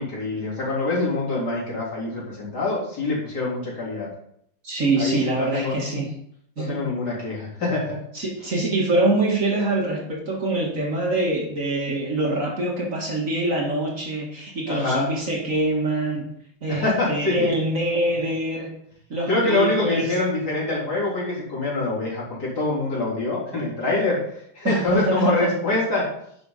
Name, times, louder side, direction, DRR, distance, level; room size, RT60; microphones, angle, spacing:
voice 1, 0.0-4.1 5.0-5.9 6.6-8.0 14.7-15.1 16.7-17.5 19.3-24.2 24.5-26.1, left 2 dB, 60° left, -6 dB, 4.3 m, -25 dB
voice 2, 4.6-6.1 6.6-6.8 8.1-16.3 16.6-18.7 19.1-20.2 24.6-25.5, right 2 dB, 45° right, -1 dB, 2.0 m, -24 dB
10.5 x 6.2 x 4.0 m, 0.70 s
omnidirectional pair, 2.0 m